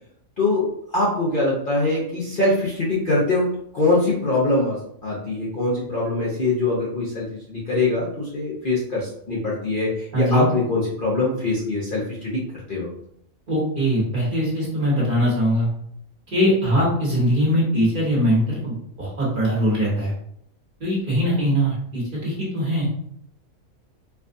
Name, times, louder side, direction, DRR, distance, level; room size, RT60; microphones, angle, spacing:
voice 1, 0.9-3.5 3.7-12.9, left 2 dB, 45° left, -6 dB, 0.8 m, -23 dB
voice 2, 10.1-10.5 13.5-15.7 16.3-20.1 20.8-22.9, equal, 40° right, -6 dB, 1.4 m, -21 dB
4.5 x 2.5 x 2.6 m, 0.69 s
omnidirectional pair, 1.4 m